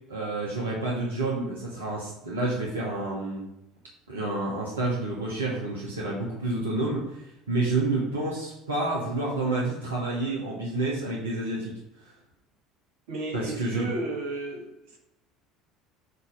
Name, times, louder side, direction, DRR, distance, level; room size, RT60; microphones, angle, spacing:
voice 1, 0.1-3.5 4.1-11.8 13.3-13.9, right 2 dB, 85° right, -4 dB, 1.1 m, -29 dB
voice 2, 13.1-15.0, right 2 dB, 70° right, 1 dB, 1.3 m, -33 dB
8.0 x 2.9 x 4.8 m, 0.88 s
figure-of-eight pair, 65°, 0 cm